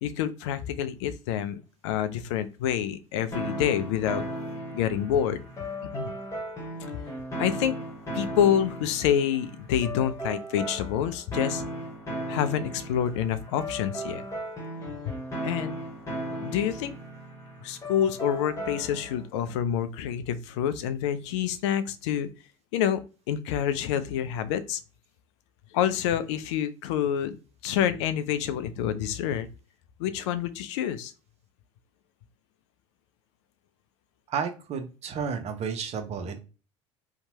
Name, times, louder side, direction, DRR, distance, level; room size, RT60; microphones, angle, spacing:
voice 1, 0.0-4.2 4.7-5.4 5.8-6.1 7.4-7.7 8.1-11.6 12.3-14.2 15.4-15.8 16.3-16.9 17.6-22.3 22.7-23.0 23.3-24.8 25.7-27.4 27.6-29.5 30.0-31.1, left 9 dB, 70° left, 12 dB, 0.4 m, -27 dB
sound 1, 3.3-19.2, right 1 dB, 20° left, 1.1 m, -36 dB
voice 2, 34.3-36.4, right 6 dB, 45° right, 6 dB, 0.6 m, -32 dB
2.8 x 2.1 x 2.8 m, 0.33 s
hypercardioid pair, 65°, 15 cm